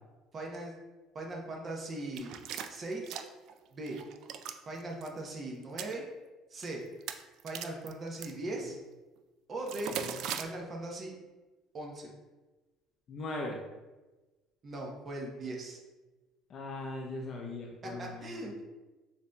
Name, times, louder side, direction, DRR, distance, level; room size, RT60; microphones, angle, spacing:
voice 1, 0.3-0.7 1.1-2.3 2.7-3.2 3.7-4.0 4.7-6.1 6.5-6.8 7.4-8.8 9.5-9.9 10.4-11.1 11.7-12.1 14.6-15.8 17.8-18.6, right 2 dB, 35° right, -1 dB, 0.7 m, -39 dB
sound 1, 2.2-3.5 3.9-4.6 4.9-5.1 5.6-5.9 6.6-6.7 7.0-8.3 9.7-10.4, right 9 dB, 65° right, 0.3 m, -39 dB
voice 2, 13.1-13.6 16.5-18.4, left 2 dB, 45° left, 0 dB, 0.5 m, -39 dB
6.6 x 2.7 x 2.2 m, 1.2 s
cardioid pair, 115°, 0 cm